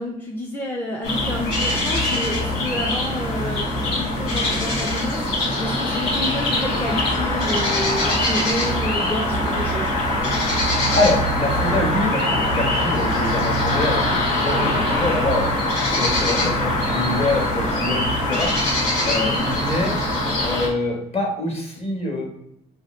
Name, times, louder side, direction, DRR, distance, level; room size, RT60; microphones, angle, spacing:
voice 1, 0.0-9.9 16.4-16.7 19.2-19.5, left 1 dB, 10° left, -1 dB, 0.5 m, -29 dB
sound 1, 1.0-20.7, left 1 dB, 90° left, 1.2 m, -22 dB
voice 2, 10.9-15.5 15.9-18.5 19.0-20.0 20.4-22.2, left 2 dB, 35° left, 0 dB, 1.2 m, -25 dB
2.7 x 2.4 x 4.2 m, 0.79 s
cardioid pair, 110°, 17 cm